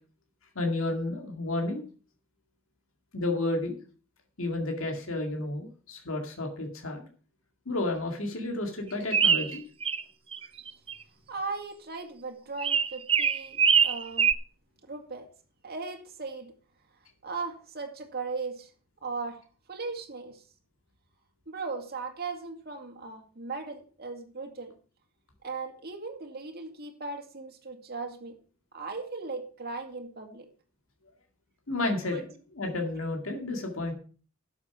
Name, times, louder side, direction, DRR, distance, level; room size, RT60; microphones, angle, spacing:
voice 1, 0.6-1.8 3.1-3.8 4.4-7.1 7.7-9.6 31.7-33.9, left 2 dB, 70° left, 2.2 m, -31 dB
sound 1, 9.1-10.0 10.3-10.9 12.6-14.3, right 7 dB, 25° right, 0.5 m, -23 dB
voice 2, 11.3-14.3 14.8-15.3 15.6-16.5 17.2-18.7 19.0-19.4 19.7-20.4 21.5-24.7 25.4-28.4 28.7-30.5 32.1-32.2, right 4 dB, 50° right, 2.2 m, -38 dB
12.0 x 7.2 x 5.9 m
head